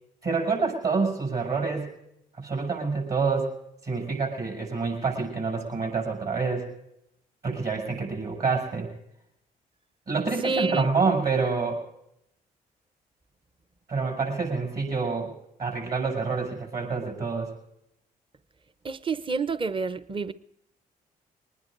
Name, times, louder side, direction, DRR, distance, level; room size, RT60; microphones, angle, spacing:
voice 1, 0.2-1.9 2.4-3.5 3.8-6.7 7.4-8.9 10.1-11.8 13.9-15.3 15.6-17.5, right 4 dB, 50° right, 6.9 m, -27 dB
voice 2, 10.4-10.9 18.8-20.3, right 4 dB, 25° right, 0.8 m, -28 dB
23.5 x 19.5 x 2.6 m
hypercardioid pair, 45°, 20 cm